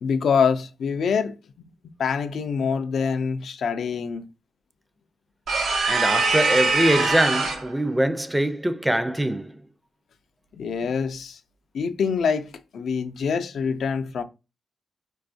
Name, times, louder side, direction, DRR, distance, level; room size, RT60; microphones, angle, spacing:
voice 1, 0.0-1.3 1.8-4.3 10.5-11.4 11.7-14.2, left 6 dB, 80° left, 0.3 m, -25 dB
sound 1, 5.5-7.7, right 3 dB, 85° right, 0.8 m, -22 dB
voice 2, 5.9-9.5, right 1 dB, 10° right, 0.4 m, -23 dB
4.1 x 2.3 x 2.5 m
cardioid pair, 60°, 0 cm